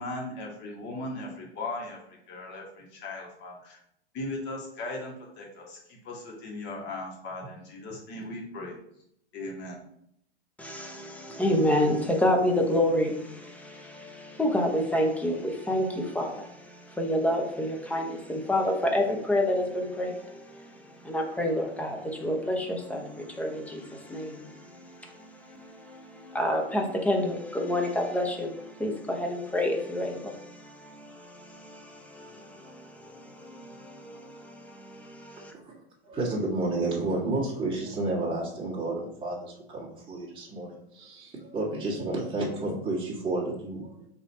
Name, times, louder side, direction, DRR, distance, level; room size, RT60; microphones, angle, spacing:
voice 1, 0.0-3.8 4.1-8.7 9.3-9.8, left 2 dB, 35° left, 1.5 m, -38 dB
voice 2, 10.6-20.7 21.0-35.5, left 1 dB, 5° left, 0.7 m, -29 dB
voice 3, 35.5-44.1, right 2 dB, 15° right, 1.6 m, -31 dB
4.0 x 2.9 x 4.2 m
hypercardioid pair, 115°, 33 cm